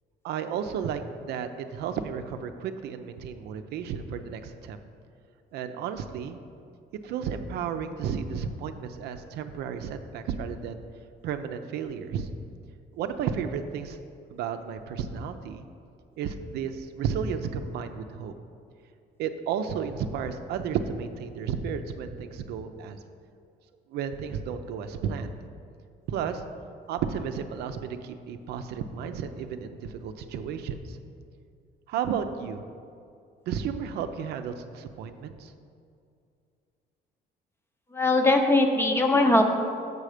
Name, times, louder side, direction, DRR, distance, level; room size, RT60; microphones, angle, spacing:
voice 1, 0.2-4.8 5.5-6.4 7.0-10.8 11.2-12.3 12.9-14.0 14.3-15.6 16.2-18.3 19.2-23.0 23.9-25.3 26.1-26.4 26.9-31.0 31.9-32.7 33.5-35.5, right 7 dB, 75° right, 8 dB, 0.5 m, -33 dB
voice 2, 37.9-39.4, left 2 dB, 15° left, 5 dB, 0.7 m, -20 dB
6.8 x 6.5 x 4.9 m, 2.4 s
cardioid pair, 110°, 17 cm